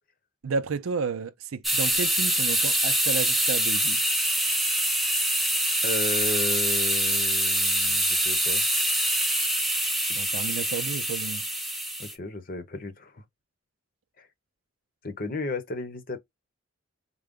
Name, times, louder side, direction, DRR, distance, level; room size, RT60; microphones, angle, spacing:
voice 1, 0.4-4.0 10.1-11.4, right 5 dB, 85° right, 0.5 m, -32 dB
sound 1, 1.6-12.1, right 1 dB, ahead, 0.6 m, -25 dB
voice 2, 5.8-8.6 12.0-13.2 14.2-14.3 15.0-16.2, left 2 dB, 40° left, 0.8 m, -34 dB
3.8 x 2.1 x 3.5 m
head